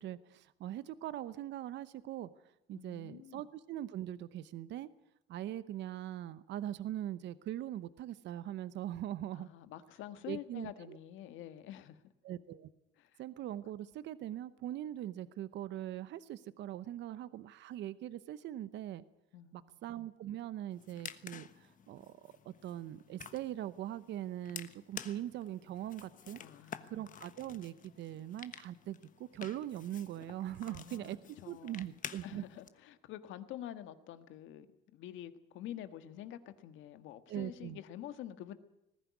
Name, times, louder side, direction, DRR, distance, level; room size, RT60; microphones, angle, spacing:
voice 1, 0.0-2.3 2.7-4.9 5.3-9.5 10.3-11.0 12.2-12.7 13.2-19.0 19.5-26.4 26.9-31.2 31.5-32.4 37.3-37.8, right 12 dB, 60° right, 15 dB, 0.9 m, -41 dB
voice 2, 2.7-3.4 9.3-12.0 13.0-13.2 19.3-19.9 26.4-27.1 30.6-34.7 34.9-38.5, left 11 dB, 75° left, 10 dB, 1.7 m, -48 dB
sound 1, 20.7-32.7, left 8 dB, 40° left, 1.3 m, -51 dB
20.0 x 15.5 x 9.6 m, 0.88 s
cardioid pair, 120°, 20 cm